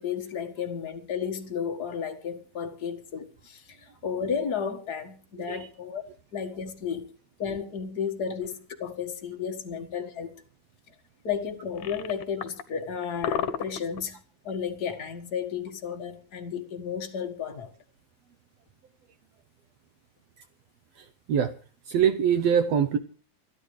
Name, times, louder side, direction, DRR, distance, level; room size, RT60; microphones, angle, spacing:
voice 1, 0.0-6.0 6.3-7.1 7.4-10.3 11.2-14.2 14.4-17.7, left 7 dB, 40° left, 1.4 m, -33 dB
sound 1, 8.4-8.6 11.6-12.6 13.0-14.0, left 8 dB, 70° left, 2.5 m, -32 dB
voice 2, 21.0-21.5 21.8-23.0, right 8 dB, 85° right, 1.4 m, -24 dB
29.0 x 11.0 x 3.2 m
omnidirectional pair, 4.1 m